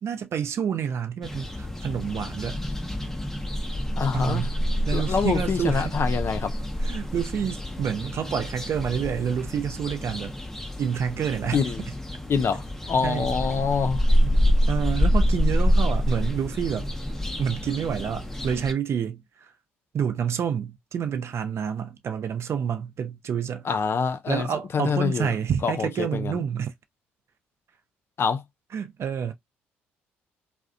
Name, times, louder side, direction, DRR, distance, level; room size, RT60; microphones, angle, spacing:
voice 1, 0.0-2.6 4.1-4.6 4.9-5.9 6.8-10.4 10.8-11.6 13.0-13.3 14.7-16.9 17.4-19.5 19.9-23.7 24.3-26.7 28.7-29.3, right 8 dB, 50° right, 0.5 m, -28 dB
sound 1, 1.2-18.7, equal, 5° left, 0.7 m, -27 dB
voice 2, 4.0-4.5 4.9-6.5 11.5-11.8 12.3-14.0 23.6-24.5 24.7-25.3 25.6-26.4 28.2-28.4, left 6 dB, 45° left, 0.4 m, -25 dB
2.4 x 2.1 x 2.5 m
hypercardioid pair, 50°, 6 cm